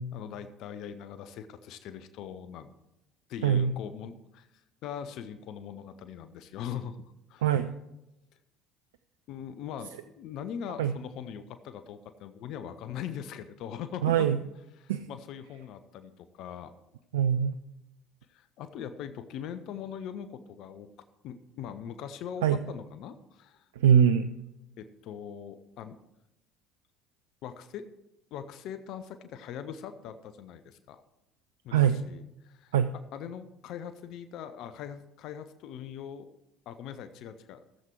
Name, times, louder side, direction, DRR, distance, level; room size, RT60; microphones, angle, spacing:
voice 1, 0.1-2.7 3.3-4.5 4.8-7.5 9.3-14.3 14.8-16.7 18.3-20.9 21.2-23.7 24.8-26.0 27.4-27.9 28.3-31.0 31.6-32.7 33.1-36.3 36.7-37.6, left 8 dB, 60° left, 11 dB, 0.7 m, -41 dB
voice 2, 3.4-3.7 7.4-7.7 10.8-10.9 14.0-14.4 14.9-15.0 17.1-17.6 22.4-22.6 23.8-24.3 31.7-32.0 32.7-32.9, right 8 dB, 80° right, 10 dB, 0.4 m, -23 dB
15.5 x 7.6 x 4.6 m, 0.89 s
hypercardioid pair, 60°, 0 cm